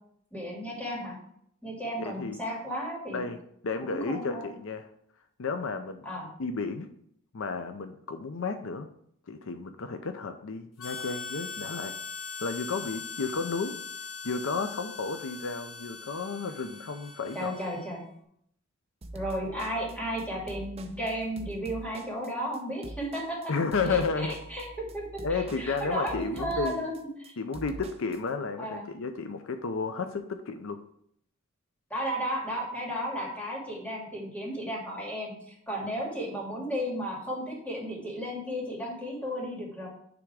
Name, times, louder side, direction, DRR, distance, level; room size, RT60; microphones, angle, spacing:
voice 1, 0.3-1.2 1.6-3.3 3.9-4.5 6.0-6.3 17.3-18.0 19.1-23.4 23.9-24.0 24.5-25.2 25.6-26.9 27.2-27.3 28.6-28.8 31.9-39.9, equal, 5° left, -3 dB, 2.4 m, -34 dB
voice 2, 2.0-2.4 3.1-3.4 3.6-4.9 5.4-6.1 6.4-6.9 7.3-8.9 9.3-11.9 12.4-13.7 14.2-17.5 23.5-24.3 25.2-26.9 27.4-30.8, left 4 dB, 70° left, 7 dB, 0.6 m, -32 dB
Harmonica, 10.8-18.1, left 5 dB, 85° left, 1.2 m, -41 dB
sound 1, 19.0-28.2, right 2 dB, 30° right, 0.7 m, -44 dB
9.7 x 3.5 x 4.8 m, 0.69 s
head